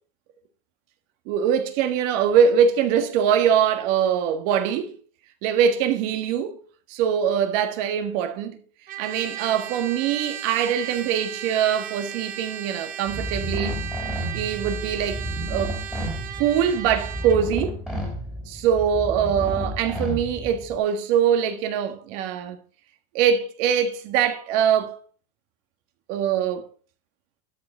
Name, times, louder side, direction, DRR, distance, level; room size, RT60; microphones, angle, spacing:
voice 1, 1.3-4.9 5.4-6.6 6.9-8.6 9.0-13.8 14.3-15.2 15.5-15.8 16.4-17.8 18.5-22.6 23.1-25.0 26.1-26.7, right 8 dB, 55° right, 1.7 m, -23 dB
Trumpet, 8.9-17.4, right 11 dB, 20° right, 0.5 m, -36 dB
sound 1, 13.1-20.8, equal, ahead, 2.6 m, -31 dB
13.0 x 5.0 x 6.5 m
supercardioid pair, 155°, 45 cm